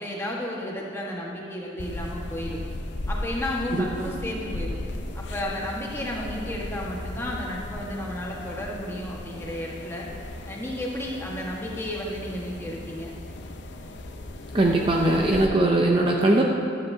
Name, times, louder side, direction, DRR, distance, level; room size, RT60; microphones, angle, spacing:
voice 1, 0.0-2.6 3.1-4.8 5.1-10.1 10.5-13.1, left 1 dB, 15° left, -3 dB, 1.4 m, -33 dB
sound 1, 1.8-15.5, left 1 dB, 75° left, 0.7 m, -36 dB
voice 2, 3.8-4.1 14.5-16.4, right 2 dB, 25° right, -1 dB, 0.7 m, -21 dB
14.5 x 12.5 x 2.8 m, 2.7 s
head